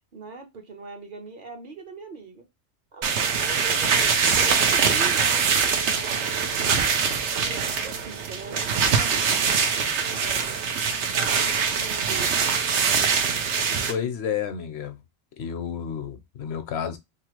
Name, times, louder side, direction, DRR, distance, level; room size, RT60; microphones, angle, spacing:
voice 1, 0.1-2.5 2.9-6.4 7.4-10.6 11.0-12.3, right 3 dB, 50° right, 0.8 m, -41 dB
sound 1, 3.0-13.9, right 6 dB, 80° right, 0.9 m, -23 dB
voice 2, 13.9-15.0 15.4-17.0, left 8 dB, 70° left, 0.8 m, -30 dB
2.9 x 2.3 x 2.9 m
omnidirectional pair, 1.2 m